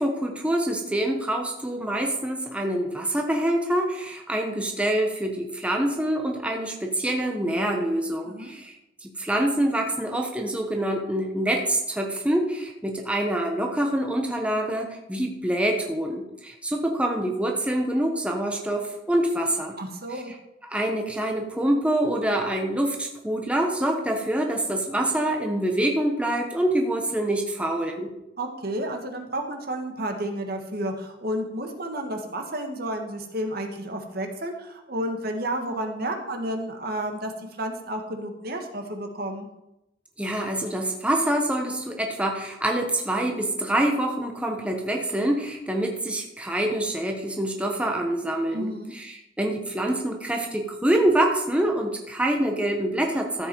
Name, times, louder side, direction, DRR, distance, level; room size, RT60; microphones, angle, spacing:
voice 1, 0.0-8.8 9.0-19.8 20.1-20.2 20.6-28.1 40.2-53.5, right 1 dB, 5° right, 1 dB, 1.1 m, -26 dB
voice 2, 19.8-20.3 28.4-39.5 48.5-48.9, right 1 dB, 55° right, 4 dB, 1.7 m, -31 dB
14.0 x 8.0 x 4.7 m, 0.89 s
head